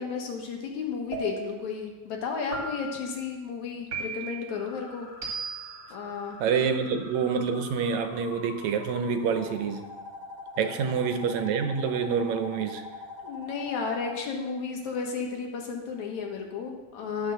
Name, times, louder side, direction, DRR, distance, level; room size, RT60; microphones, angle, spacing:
voice 1, 0.0-5.1 5.9-6.4 10.6-10.9 13.2-17.3, left 5 dB, 75° left, 1 dB, 2.8 m, -33 dB
sound 1, 1.1-1.7 2.5-3.1 3.9-4.5 5.2-5.8, right 4 dB, 30° right, 2.1 m, -35 dB
sound 2, 4.5-14.1, left 3 dB, 60° left, 2.6 m, -44 dB
voice 2, 6.4-9.8 10.6-12.9, right 6 dB, 75° right, 8 dB, 2.0 m, -27 dB
11.5 x 6.3 x 6.5 m, 1.2 s
omnidirectional pair, 3.4 m